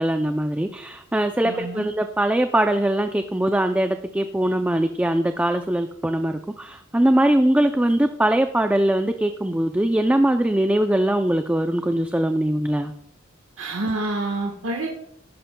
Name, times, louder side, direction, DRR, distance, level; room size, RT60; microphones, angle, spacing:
voice 1, 0.0-12.9, right 1 dB, 5° right, 7 dB, 0.4 m, -21 dB
voice 2, 1.4-1.9 13.6-14.9, right 2 dB, 85° right, 1 dB, 1.3 m, -27 dB
13.5 x 11.5 x 2.2 m, 0.73 s
head